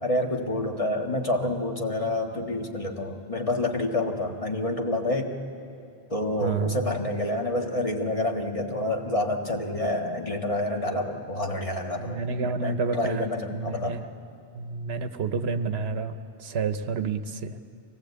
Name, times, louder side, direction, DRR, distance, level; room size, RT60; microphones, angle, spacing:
voice 1, 0.0-5.3 6.1-14.0, left 1 dB, 35° left, 1 dB, 1.7 m, -28 dB
voice 2, 6.4-6.8 12.0-14.0 14.5-17.6, right 4 dB, 85° right, 9 dB, 1.2 m, -29 dB
24.5 x 18.5 x 8.2 m, 2.5 s
omnidirectional pair, 1.1 m